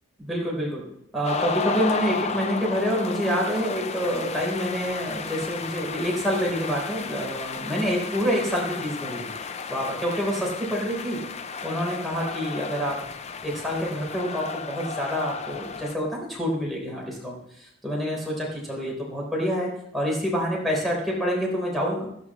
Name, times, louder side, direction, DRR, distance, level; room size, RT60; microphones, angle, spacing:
voice 1, 0.2-0.9 1.1-9.2 9.7-11.2 11.6-13.0 13.4-22.1, equal, ahead, -3 dB, 4.0 m, -27 dB
sound 1, 1.2-16.0, left 5 dB, 35° left, 0.5 m, -33 dB
14.0 x 13.5 x 3.2 m, 0.74 s
head